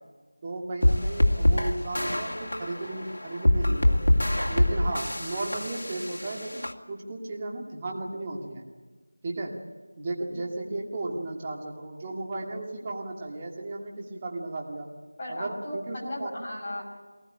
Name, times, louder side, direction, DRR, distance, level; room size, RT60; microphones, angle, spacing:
voice 1, 0.4-4.0 4.5-8.6 9.2-9.5 10.0-14.9 15.3-16.4, right 2 dB, 15° right, -1 dB, 2.4 m, -35 dB
sound 1, 0.8-6.7, left 1 dB, 65° left, 2.5 m, -25 dB
voice 2, 15.2-16.8, left 1 dB, 15° left, -5 dB, 6.0 m, -36 dB
22.0 x 19.5 x 9.1 m, 1.3 s
figure-of-eight pair, 175°, 0 cm